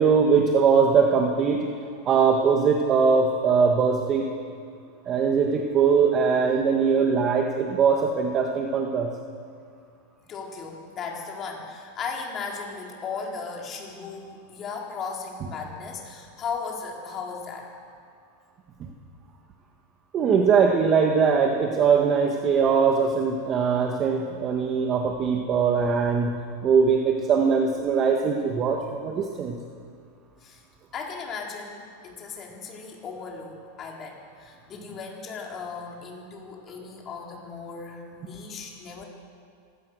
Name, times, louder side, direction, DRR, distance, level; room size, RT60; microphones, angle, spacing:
voice 1, 0.0-1.6 2.0-4.3 5.1-9.1 20.1-26.3 26.6-29.5, right 6 dB, 30° right, 2 dB, 1.7 m, -21 dB
voice 2, 10.3-17.7 30.4-30.6 30.9-39.0, left 5 dB, 30° left, -1 dB, 4.2 m, -36 dB
25.0 x 17.0 x 6.5 m, 2.3 s
supercardioid pair, 145°, 0 cm